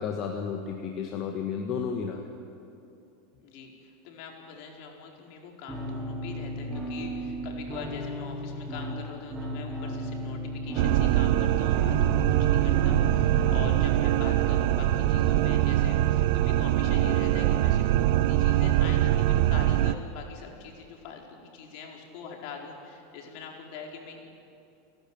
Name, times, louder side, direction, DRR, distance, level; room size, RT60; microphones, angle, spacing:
voice 1, 0.0-2.2, left 6 dB, 45° left, 2 dB, 1.9 m, -32 dB
voice 2, 3.4-17.8 18.3-24.3, left 6 dB, 60° left, 1 dB, 4.3 m, -43 dB
sound 1, 5.7-13.7, equal, 20° right, 4.1 m, -35 dB
sound 2, 10.8-19.9, right 13 dB, 65° right, 0.8 m, -23 dB
29.5 x 12.0 x 9.2 m, 2.6 s
hypercardioid pair, 105°, 0 cm